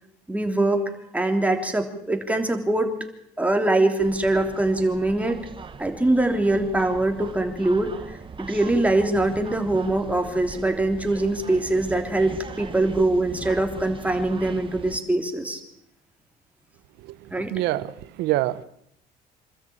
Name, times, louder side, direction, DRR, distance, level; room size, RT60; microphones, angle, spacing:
voice 1, 0.3-2.9 3.4-5.4 5.8-15.6 17.3-17.5, right 2 dB, 10° right, 3.3 m, -23 dB
sound 1, 4.0-15.0, right 5 dB, 30° right, 1.6 m, -40 dB
voice 2, 17.0-18.6, right 16 dB, 85° right, 1.0 m, -27 dB
26.0 x 13.5 x 8.7 m
cardioid pair, 110°, 17 cm